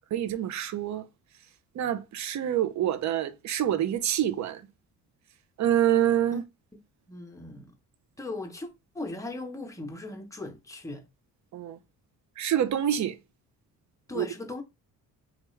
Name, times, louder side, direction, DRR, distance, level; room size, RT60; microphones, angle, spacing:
voice 1, 0.1-1.1 1.8-4.6 5.6-6.4 11.5-11.8 12.4-13.2 14.1-14.3, right 11 dB, 55° right, 0.6 m, -26 dB
voice 2, 7.1-7.7 8.2-8.7 8.9-11.0 14.1-14.6, left 2 dB, 10° left, 0.9 m, -38 dB
3.4 x 2.4 x 3.1 m
cardioid pair, 85°, 35 cm